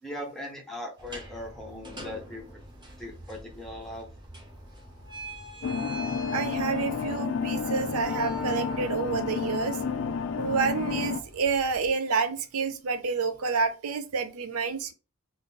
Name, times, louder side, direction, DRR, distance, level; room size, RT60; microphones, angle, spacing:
voice 1, 0.0-2.6 3.0-4.1, left 1 dB, ahead, 0.7 m, -39 dB
sound 1, 1.0-11.9, equal, 20° right, 0.9 m, -43 dB
sound 2, 5.6-11.2, left 5 dB, 55° left, 0.3 m, -31 dB
voice 2, 6.3-9.8 10.4-14.9, right 5 dB, 75° right, 0.5 m, -29 dB
2.5 x 2.5 x 3.7 m
head